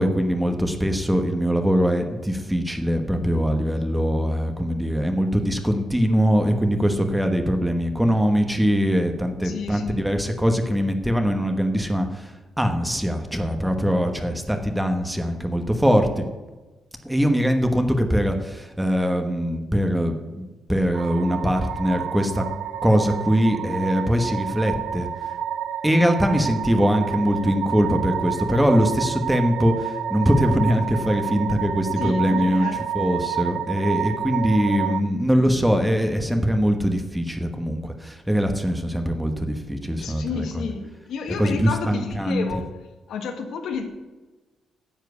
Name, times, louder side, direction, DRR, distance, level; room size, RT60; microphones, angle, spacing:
voice 1, 0.0-16.2 17.0-22.4 22.8-25.1 25.8-32.7 32.9-40.4 41.4-42.6, equal, 5° right, 1.1 m, -22 dB
voice 2, 9.4-10.0 32.0-32.9 40.0-42.7 43.1-43.9, left 5 dB, 75° left, 1.7 m, -31 dB
sound 1, 20.9-35.0, right 9 dB, 75° right, 0.6 m, -29 dB
10.0 x 7.5 x 8.1 m
cardioid pair, 145°, 0 cm